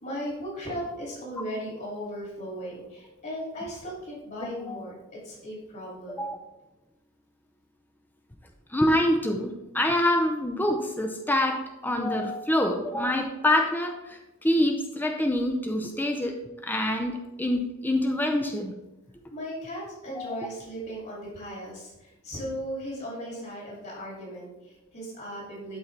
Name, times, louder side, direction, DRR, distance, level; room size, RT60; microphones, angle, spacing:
voice 1, 0.0-6.3 19.3-25.8, equal, 45° left, -5 dB, 2.6 m, -37 dB
voice 2, 4.4-4.8 6.1-6.4 8.7-18.7 20.2-20.3, left 1 dB, 10° left, 3 dB, 0.5 m, -26 dB
12.0 x 4.3 x 3.3 m, 0.98 s
head